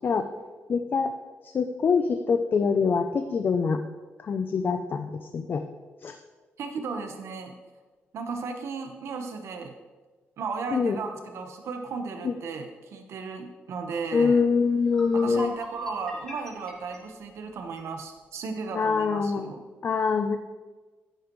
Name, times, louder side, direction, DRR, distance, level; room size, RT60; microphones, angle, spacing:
voice 1, 0.7-1.1 1.4-3.8 4.2-5.6 6.0-6.1 10.7-11.0 12.2-12.3 14.1-15.5 18.7-19.5 19.8-20.4, left 5 dB, 45° left, 7 dB, 0.5 m, -24 dB
voice 2, 6.6-7.5 8.1-9.7 10.4-14.4 15.1-19.6, right 4 dB, 75° right, 5 dB, 1.2 m, -35 dB
sound 1, 14.4-14.5 14.8-17.9, equal, 10° left, 2.8 m, -41 dB
10.0 x 10.0 x 3.2 m, 1.3 s
cardioid pair, 115°, 5 cm